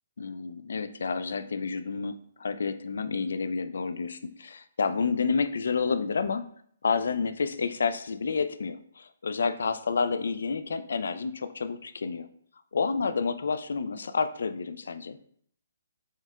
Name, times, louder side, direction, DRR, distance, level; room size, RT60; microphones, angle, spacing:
voice 1, 0.2-6.4 6.8-12.3 12.7-15.2, left 5 dB, 80° left, 11 dB, 0.3 m, -29 dB
4.6 x 2.2 x 3.5 m, 0.62 s
hypercardioid pair, 165°, 0 cm